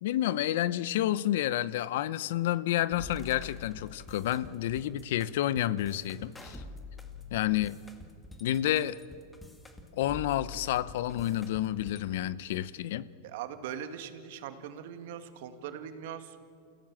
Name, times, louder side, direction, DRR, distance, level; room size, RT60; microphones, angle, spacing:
voice 1, 0.0-6.6 7.3-7.8 8.4-9.0 9.9-13.1, left 13 dB, 70° left, 18 dB, 0.8 m, -30 dB
sound 1, 2.9-12.0, left 3 dB, 10° left, 2.0 m, -47 dB
voice 2, 13.2-16.4, right 9 dB, 65° right, 8 dB, 2.1 m, -41 dB
28.5 x 16.5 x 7.4 m, 2.3 s
supercardioid pair, 130°, 0 cm